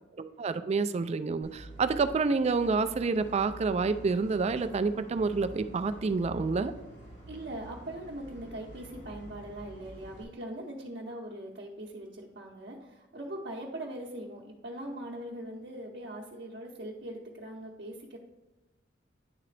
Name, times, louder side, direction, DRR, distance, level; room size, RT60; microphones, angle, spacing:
voice 1, 0.2-6.7, right 4 dB, 35° right, 11 dB, 0.3 m, -28 dB
sound 1, 1.4-10.2, right 1 dB, 65° left, 2.3 m, -48 dB
voice 2, 7.3-18.2, right 1 dB, 55° right, -3 dB, 0.8 m, -41 dB
9.7 x 3.8 x 3.3 m, 1.1 s
head